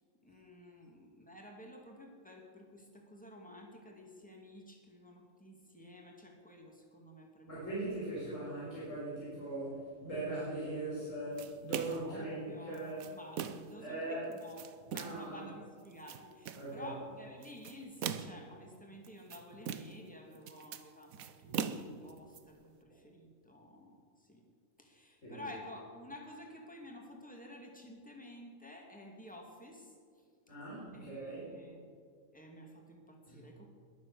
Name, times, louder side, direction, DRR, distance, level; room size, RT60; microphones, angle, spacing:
voice 1, 0.2-7.8 11.9-12.8 13.1-14.6 14.9-24.5 24.8-30.3 30.9-31.9 32.3-33.7, left 1 dB, 5° left, 0 dB, 2.4 m, -52 dB
voice 2, 7.5-13.0 13.8-14.3 14.9-15.4 16.5-16.9 25.2-25.4 30.5-31.4 33.3-33.5, right 2 dB, 65° left, -9 dB, 5.2 m, -40 dB
sound 1, 11.4-12.1 12.7-13.8 14.3-15.3 15.8-16.7 17.4-18.5 19.0-20.1 20.3-22.4, right 8 dB, 85° right, 1.2 m, -41 dB
21.5 x 7.5 x 7.0 m, 2.2 s
omnidirectional pair, 1.4 m